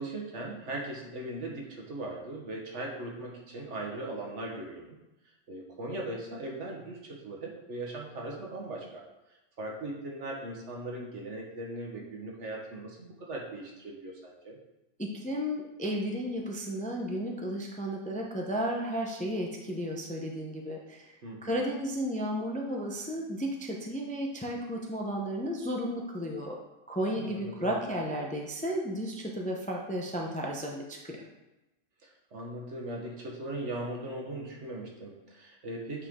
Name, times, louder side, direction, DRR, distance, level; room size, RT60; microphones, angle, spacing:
voice 1, 0.0-5.0 5.5-9.0 9.6-14.6 21.2-21.5 27.0-27.9 32.0-36.1, right 1 dB, 65° right, -1 dB, 1.6 m, -39 dB
voice 2, 15.0-21.0 21.4-26.6 26.9-31.2, equal, 10° left, 0 dB, 0.6 m, -33 dB
8.6 x 4.5 x 3.7 m, 0.99 s
omnidirectional pair, 1.3 m